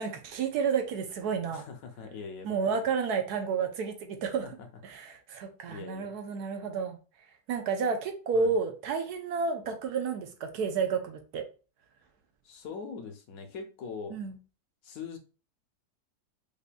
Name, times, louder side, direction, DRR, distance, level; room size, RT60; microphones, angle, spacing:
voice 1, 0.0-1.7 2.4-4.5 4.8-7.0 7.5-11.5 14.1-14.4, right 5 dB, 75° right, 1.1 m, -31 dB
voice 2, 1.5-2.9 4.4-4.5 5.7-6.1 8.3-8.5 12.4-14.1 14.8-15.2, left 5 dB, 65° left, 1.0 m, -42 dB
5.1 x 2.6 x 2.2 m
omnidirectional pair, 1.8 m